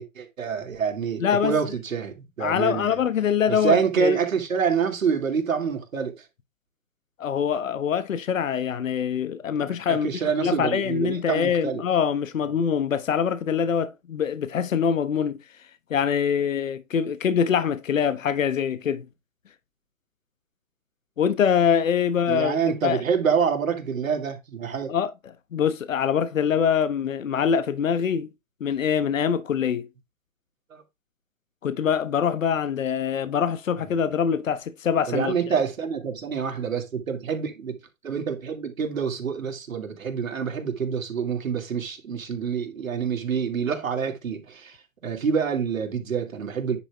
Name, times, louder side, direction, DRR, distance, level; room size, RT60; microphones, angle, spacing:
voice 1, 0.0-3.0 3.5-6.3 9.9-11.8 22.3-24.9 30.7-30.8 35.1-37.8 38.0-44.8 45.0-46.8, right 6 dB, 75° right, 2.6 m, -27 dB
voice 2, 1.2-1.6 2.4-4.2 7.2-10.1 10.4-15.4 15.9-19.1 21.2-22.6 22.8-23.0 24.9-25.1 25.5-28.3 28.6-29.9 31.6-35.6, left 7 dB, 70° left, 1.2 m, -24 dB
9.8 x 4.9 x 3.5 m
hypercardioid pair, 150°, 41 cm